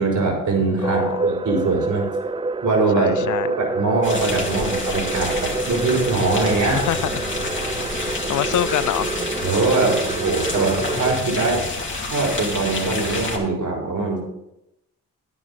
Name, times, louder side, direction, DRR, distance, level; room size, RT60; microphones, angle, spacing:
voice 1, 0.0-2.1 2.6-3.2 3.5-6.8 9.4-11.7 12.0-14.2, right 3 dB, 55° right, 4.5 m, -22 dB
voice 2, 0.8-1.3 3.0-3.5 6.7-7.1 8.3-9.2, left 12 dB, 55° left, 0.5 m, -25 dB
sound 1, 0.8-11.2, right 3 dB, 15° right, 0.4 m, -27 dB
sound 2, 4.0-13.4, left 3 dB, 35° left, 2.6 m, -29 dB
9.8 x 9.2 x 4.2 m
supercardioid pair, 60°, 36 cm